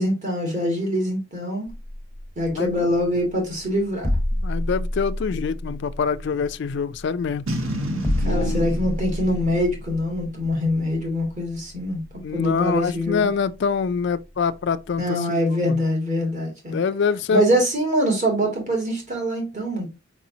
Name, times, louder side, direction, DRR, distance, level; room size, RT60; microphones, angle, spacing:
voice 1, 0.0-1.7 2.4-4.1 8.2-12.0 12.3-13.3 15.0-16.8 17.3-19.9, equal, 35° right, 2.1 m, -24 dB
sound 1, 1.7-15.0, left 1 dB, 10° left, 0.7 m, -31 dB
voice 2, 2.5-2.9 4.4-7.5 8.2-8.7 12.2-15.8 16.7-17.6, left 5 dB, 55° left, 0.3 m, -25 dB
Boom, 7.5-10.8, equal, 80° right, 1.1 m, -31 dB
4.7 x 4.2 x 2.7 m
head